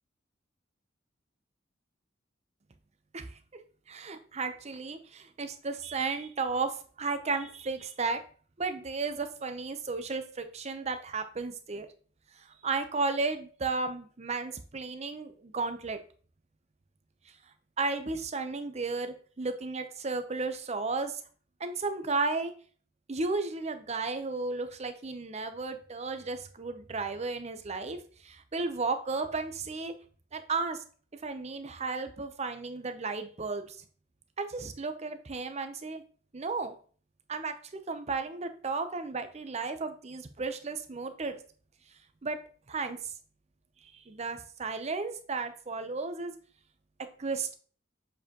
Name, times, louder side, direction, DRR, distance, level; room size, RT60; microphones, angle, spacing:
voice 1, 3.9-8.2 8.6-11.9 12.6-16.0 17.8-21.2 21.6-22.5 23.1-28.0 28.2-29.9 30.3-30.8 31.2-33.8 34.4-36.0 36.3-36.8 37.3-37.5 37.9-41.4 42.2-42.4 42.7-43.0 43.9-46.3 47.2-47.5, right 3 dB, 35° right, 9 dB, 0.7 m, -34 dB
7.6 x 4.5 x 2.9 m, 0.43 s
head